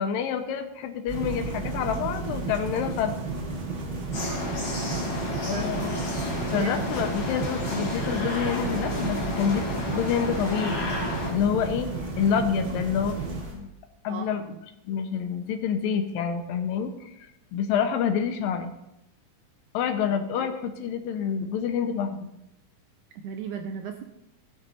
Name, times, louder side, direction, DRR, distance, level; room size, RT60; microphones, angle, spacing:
voice 1, 0.0-3.1 5.4-11.0 11.3-11.9 12.2-13.7 14.0-14.4 14.9-17.1 17.5-18.7 19.7-22.3, left 7 dB, 80° left, 7 dB, 2.5 m, -28 dB
sound 1, 1.1-13.5, right 1 dB, 25° right, 4.3 m, -40 dB
sound 2, 1.1-13.4, right 4 dB, 50° right, 1.5 m, -34 dB
sound 3, 4.1-11.3, left 1 dB, 35° left, 2.8 m, -31 dB
voice 2, 4.2-4.5 5.5-5.9 6.5-6.7 14.1-14.6 20.3-20.5 23.2-24.0, right 7 dB, 75° right, 5 dB, 1.8 m, -37 dB
16.0 x 6.6 x 4.3 m, 0.86 s
omnidirectional pair, 4.1 m